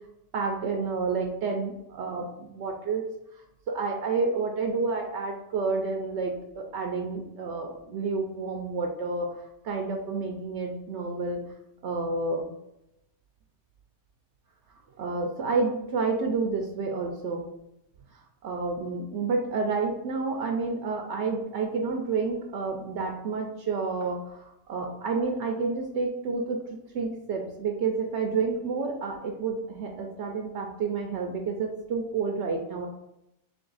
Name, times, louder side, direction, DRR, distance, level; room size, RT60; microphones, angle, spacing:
voice 1, 0.3-3.0 3.7-11.4 11.8-12.5 15.0-17.4 18.1-26.6 26.9-32.9, right 4 dB, 70° right, 2 dB, 0.8 m, -30 dB
3.4 x 3.4 x 3.9 m, 0.85 s
omnidirectional pair, 1.2 m